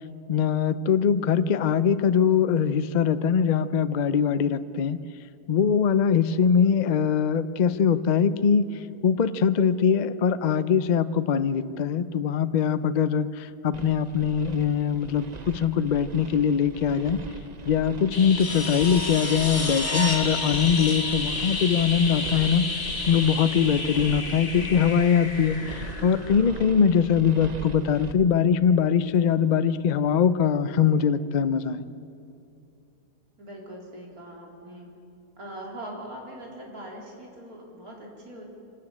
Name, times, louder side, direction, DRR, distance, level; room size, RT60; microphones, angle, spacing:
voice 1, 0.3-5.0 5.5-8.7 9.0-17.2 17.6-22.6 23.1-31.9, left 7 dB, 85° left, 13 dB, 0.4 m, -22 dB
sound 1, 13.7-28.1, right 3 dB, 35° right, 0.8 m, -40 dB
sound 2, 18.1-26.8 29.1-29.2, left 3 dB, 55° left, 2.6 m, -31 dB
voice 2, 33.4-34.9 35.4-38.5, right 1 dB, 65° right, -2 dB, 4.3 m, -41 dB
25.5 x 12.5 x 8.7 m, 2.6 s
omnidirectional pair, 1.7 m